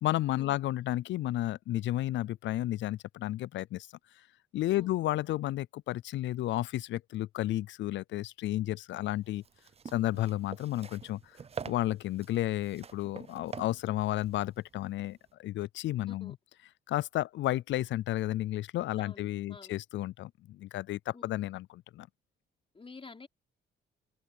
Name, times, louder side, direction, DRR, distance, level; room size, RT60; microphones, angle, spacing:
voice 1, 0.0-3.9 4.5-9.4 9.9-11.2 11.6-16.3 16.9-22.1, left 14 dB, 70° left, 0.4 m, -32 dB
sound 1, 9.2-15.3, right 6 dB, 30° right, 0.6 m, -46 dB
voice 2, 19.0-19.8 21.1-21.2 22.7-23.3, left 4 dB, 25° left, 4.3 m, -50 dB
cardioid pair, 90°, 20 cm